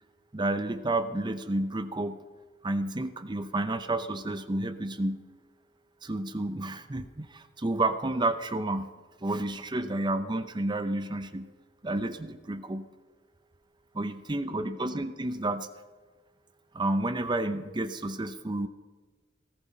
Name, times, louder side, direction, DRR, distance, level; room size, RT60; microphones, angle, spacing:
voice 1, 0.3-2.2 2.6-5.2 6.0-8.9 9.2-11.5 11.8-12.9 13.9-15.7 16.7-18.7, right 2 dB, 25° right, 10 dB, 0.6 m, -30 dB
18.0 x 15.0 x 4.3 m, 1.4 s
head